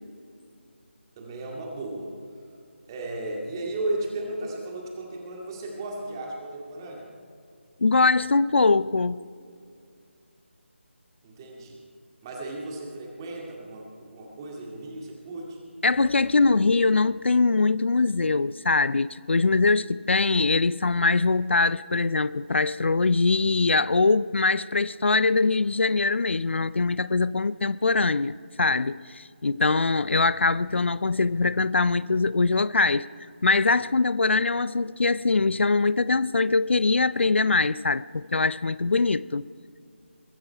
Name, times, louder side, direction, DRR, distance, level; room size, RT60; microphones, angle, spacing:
voice 1, 1.2-2.1 2.9-7.1 11.2-11.8 12.2-15.6, right 2 dB, 20° right, 2.2 m, -35 dB
voice 2, 7.8-9.2 15.8-33.1 33.4-39.5, left 3 dB, 65° left, 0.4 m, -22 dB
22.0 x 10.0 x 4.6 m
figure-of-eight pair, 160°, 7 cm